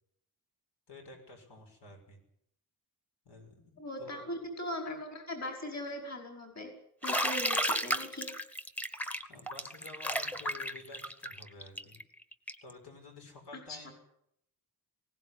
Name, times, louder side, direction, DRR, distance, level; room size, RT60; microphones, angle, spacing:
voice 1, 0.9-2.2 3.2-3.6 4.0-4.2 9.3-12.0 12.6-13.9, left 3 dB, 80° left, 3 dB, 6.6 m, -51 dB
voice 2, 3.8-6.7 7.0-8.3 13.7-13.8, left 1 dB, 40° left, 3 dB, 5.1 m, -39 dB
Bathtub (filling or washing), 7.0-12.7, equal, 5° left, 1.1 m, -33 dB
20.5 x 18.0 x 9.9 m, 0.72 s
wide cardioid pair, 175°, 40 cm